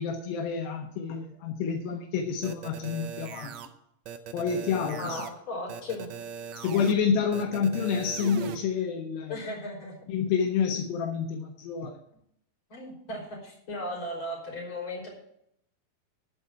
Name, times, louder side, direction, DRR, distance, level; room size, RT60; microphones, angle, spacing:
voice 1, 0.0-3.5 4.3-5.2 6.6-9.4 10.1-12.0, left 6 dB, 80° left, 3 dB, 2.6 m, -28 dB
sound 1, 2.4-3.7 4.1-5.3 5.7-6.9 7.3-8.6, right 8 dB, 85° right, 1.5 m, -39 dB
voice 2, 5.0-6.1 9.3-10.0 12.7-15.1, left 1 dB, 35° left, -3 dB, 4.2 m, -36 dB
13.5 x 4.6 x 8.4 m, 0.74 s
omnidirectional pair, 4.3 m